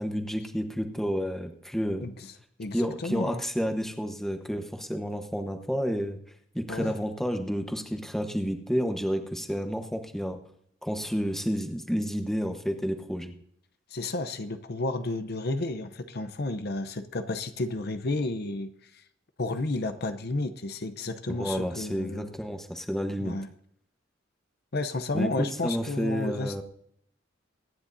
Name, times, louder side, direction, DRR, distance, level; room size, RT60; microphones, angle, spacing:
voice 1, 0.0-2.1 2.7-6.2 6.5-10.4 10.8-13.3 21.3-23.4 25.1-26.6, equal, ahead, 5 dB, 1.1 m, -30 dB
voice 2, 2.6-3.4 6.7-7.0 13.9-19.0 19.4-22.3 23.2-23.5 24.7-26.6, left 2 dB, 55° left, 10 dB, 0.8 m, -32 dB
24.0 x 10.0 x 2.7 m, 0.70 s
head